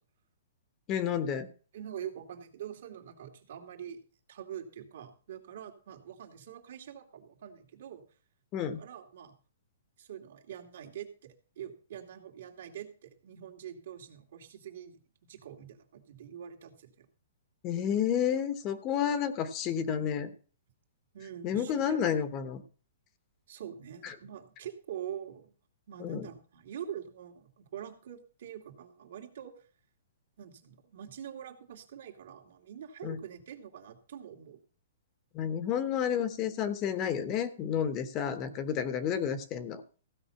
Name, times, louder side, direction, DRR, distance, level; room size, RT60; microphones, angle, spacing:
voice 1, 0.9-1.5 8.5-8.8 17.6-20.3 21.4-22.6 24.0-24.1 26.0-26.3 33.0-33.2 35.3-39.8, left 8 dB, 25° left, 11 dB, 1.0 m, -30 dB
voice 2, 1.7-4.0 4.3-8.0 8.8-9.3 10.0-15.0 15.3-17.1 21.1-22.0 23.5-25.5 25.9-29.5 30.4-34.6, right 9 dB, 65° right, 4 dB, 2.5 m, -44 dB
15.5 x 5.4 x 7.0 m, 0.39 s
hypercardioid pair, 155°, 0 cm